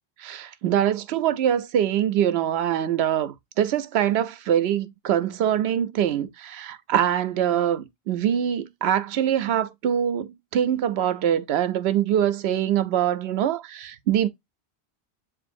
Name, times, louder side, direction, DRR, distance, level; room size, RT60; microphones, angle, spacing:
voice 1, 0.2-14.3, right 10 dB, 80° right, 0.8 m, -24 dB
7.6 x 2.6 x 2.4 m
omnidirectional pair, 1.1 m